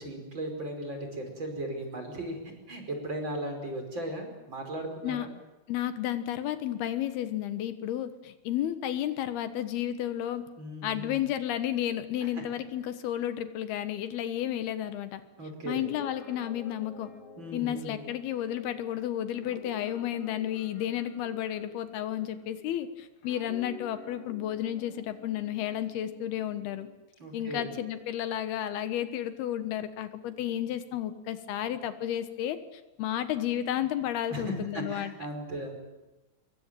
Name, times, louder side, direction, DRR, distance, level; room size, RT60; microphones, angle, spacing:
voice 1, 0.0-2.4 2.7-5.3 10.6-11.2 12.2-12.3 15.4-15.8 17.4-18.0 27.2-27.7 34.3-35.8, right 1 dB, 30° right, 4 dB, 5.7 m, -37 dB
voice 2, 5.7-10.5 10.8-15.2 15.7-17.1 17.5-26.9 27.3-35.1, left 11 dB, 80° left, 10 dB, 3.3 m, -32 dB
Guitar, 15.6-22.8 23.2-26.9, left 4 dB, 65° left, 4.1 m, -48 dB
25.5 x 22.5 x 9.1 m, 1.0 s
omnidirectional pair, 4.4 m